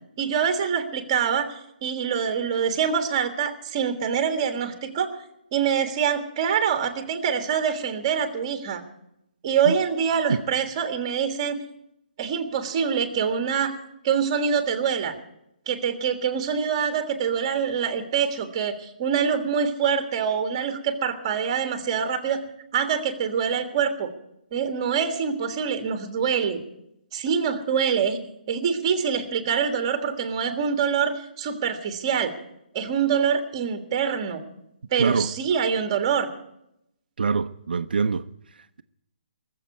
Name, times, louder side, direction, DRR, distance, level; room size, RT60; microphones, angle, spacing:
voice 1, 0.2-1.5 1.8-5.1 5.5-8.8 9.4-11.5 12.2-13.7 14.0-15.1 15.7-22.4 22.7-24.1 24.5-26.6 27.1-28.2 28.5-32.3 32.7-34.4 34.9-36.3, right 7 dB, 25° right, 1.6 m, -25 dB
voice 2, 37.2-38.2, right 5 dB, 75° right, 0.7 m, -24 dB
19.0 x 7.6 x 9.3 m
hypercardioid pair, 170°, 5 cm